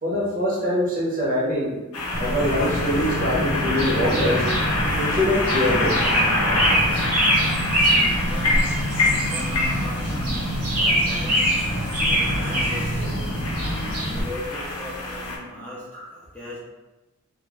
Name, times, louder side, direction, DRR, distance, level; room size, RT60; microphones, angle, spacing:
voice 1, 0.0-1.8 2.2-4.5 4.9-5.9 10.1-10.2 11.7-11.8 15.9-16.0, left 1 dB, 40° right, -6 dB, 0.7 m, -24 dB
sound 1, 1.9-15.4, left 2 dB, 70° left, 0.6 m, -27 dB
sound 2, 2.1-14.2, equal, 85° right, 0.8 m, -24 dB
voice 2, 7.8-8.8 9.3-11.5 12.1-13.5 14.0-16.6, left 1 dB, 5° left, -8 dB, 0.3 m, -37 dB
2.3 x 2.1 x 2.9 m, 1.1 s
head